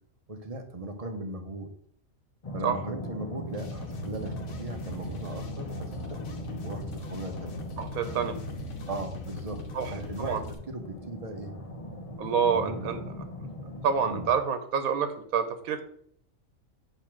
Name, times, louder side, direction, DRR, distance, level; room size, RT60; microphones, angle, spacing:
voice 1, 0.3-1.7 2.5-6.2 6.5-7.5 8.9-9.6 9.9-11.5 12.4-13.0 14.1-14.3, right 2 dB, 35° right, 5 dB, 0.7 m, -38 dB
sound 1, 2.4-14.3, left 1 dB, 30° left, 0.7 m, -40 dB
sound 2, 3.5-10.5, left 2 dB, 75° left, 1.2 m, -40 dB
voice 2, 7.8-8.4 9.7-9.9 10.2-10.4 12.2-13.0 13.8-15.8, right 6 dB, 80° right, 8 dB, 1.2 m, -27 dB
6.8 x 3.0 x 5.9 m, 0.66 s
omnidirectional pair, 1.5 m